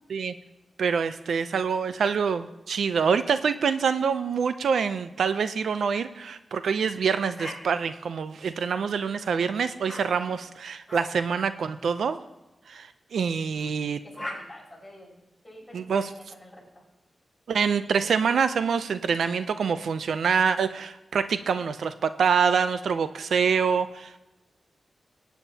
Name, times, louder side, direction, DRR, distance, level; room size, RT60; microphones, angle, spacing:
voice 1, 0.8-12.2 12.7-14.0 15.7-16.1 17.5-24.2, right 6 dB, 90° right, 11 dB, 0.5 m, -26 dB
sound 1, 7.4-7.6 8.6-9.1 9.9-10.0 10.9-11.0 11.9-12.1 13.6-13.7 14.2-14.4, left 1 dB, 10° right, 4.9 m, -38 dB
voice 2, 13.9-16.8, left 1 dB, 5° left, -5 dB, 5.3 m, -49 dB
21.0 x 9.2 x 2.8 m, 0.98 s
wide cardioid pair, 110°, 0 cm